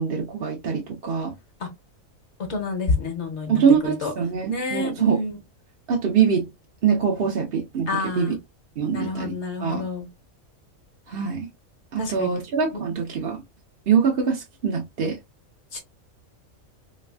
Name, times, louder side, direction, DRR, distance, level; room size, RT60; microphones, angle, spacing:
voice 1, 0.0-1.3 3.5-5.2 5.9-6.5 6.8-7.9 8.1-8.4 8.8-9.3 9.6-9.9 11.1-11.5 11.9-13.4 13.9-15.2, right 6 dB, 50° right, 0.8 m, -23 dB
voice 2, 2.5-4.1 4.5-5.4 7.9-8.4 8.9-10.1 12.0-12.3 15.7-15.8, left 3 dB, 55° left, 1.3 m, -28 dB
3.4 x 3.2 x 2.2 m
omnidirectional pair, 1.4 m